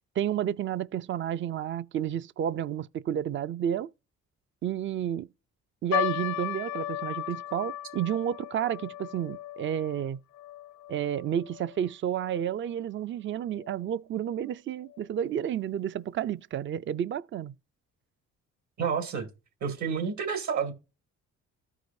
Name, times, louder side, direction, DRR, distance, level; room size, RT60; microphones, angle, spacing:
voice 1, 0.2-3.9 4.6-5.3 5.8-10.2 10.9-17.5, right 10 dB, 40° right, 0.4 m, -31 dB
sound 1, 5.9-12.4 12.7-12.8 13.5-13.8 14.4-14.5 14.9-15.0, left 13 dB, 70° left, 0.5 m, -36 dB
voice 2, 18.8-19.3 19.6-20.7, right 6 dB, 70° right, 2.4 m, -29 dB
14.0 x 4.9 x 2.6 m
cardioid pair, 90°, 30 cm